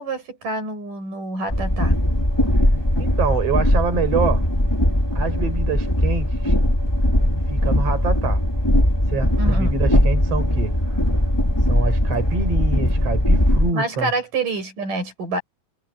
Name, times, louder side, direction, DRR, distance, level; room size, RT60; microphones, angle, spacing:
voice 1, 0.0-2.0 9.4-9.8 13.7-15.4, right 2 dB, 75° right, 9.2 m, -27 dB
Train, 1.5-13.7, left 1 dB, 5° left, 3.3 m, -19 dB
voice 2, 3.0-4.5 5.1-6.5 7.5-8.4 9.1-11.0 11.7-14.1, right 4 dB, 45° right, 6.3 m, -26 dB
omnidirectional pair, 3.8 m